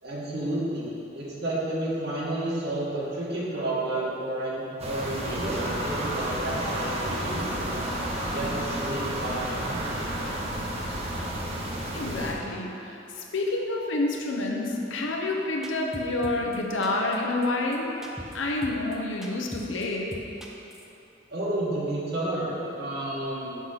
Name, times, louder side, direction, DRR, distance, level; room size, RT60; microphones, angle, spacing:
voice 1, 0.0-7.9 8.3-10.4 21.3-23.6, right 1 dB, 60° right, -7 dB, 1.4 m, -31 dB
sound 1, 4.8-12.3, right 1 dB, 35° right, 0.9 m, -31 dB
voice 2, 11.9-18.0 18.3-20.3, left 2 dB, 90° left, 1 dB, 0.8 m, -28 dB
sound 2, 15.6-16.6 16.8-17.2 17.4-17.5 17.7-17.8 18.0-18.4 18.6-19.0 19.2-19.8 20.1-20.9, equal, 5° right, 0.5 m, -40 dB
6.1 x 4.0 x 5.6 m, 2.9 s
head